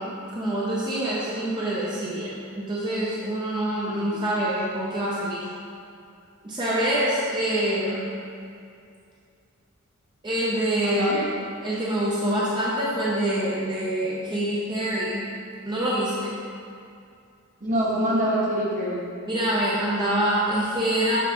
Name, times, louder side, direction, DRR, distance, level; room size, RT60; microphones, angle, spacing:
voice 1, 0.0-5.5 6.4-8.1 10.2-15.3 15.7-16.4 19.3-21.2, right 1 dB, 20° right, -7 dB, 0.7 m, -26 dB
voice 2, 3.9-4.2 10.8-11.2 17.6-19.0, equal, 40° right, -6 dB, 1.2 m, -25 dB
7.1 x 4.6 x 3.0 m, 2.4 s
head